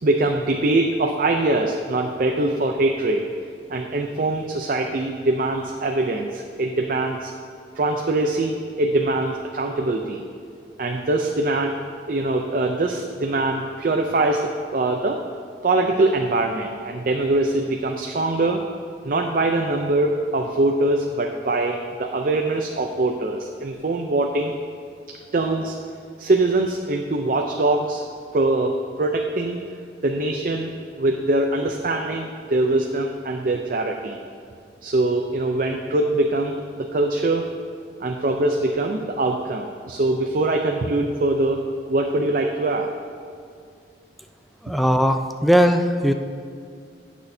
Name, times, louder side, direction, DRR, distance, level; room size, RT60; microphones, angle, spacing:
voice 1, 0.0-3.3 3.7-7.3 7.8-10.2 10.8-11.8 12.1-15.2 15.6-18.6 19.0-24.6 25.3-25.7 26.2-28.0 28.3-29.6 30.0-34.2 34.8-37.5 38.0-41.6 41.9-42.9, right 2 dB, 50° right, 2 dB, 0.5 m, -23 dB
voice 2, 44.6-46.1, equal, ahead, 6 dB, 0.4 m, -18 dB
18.5 x 6.2 x 2.7 m, 2.3 s
head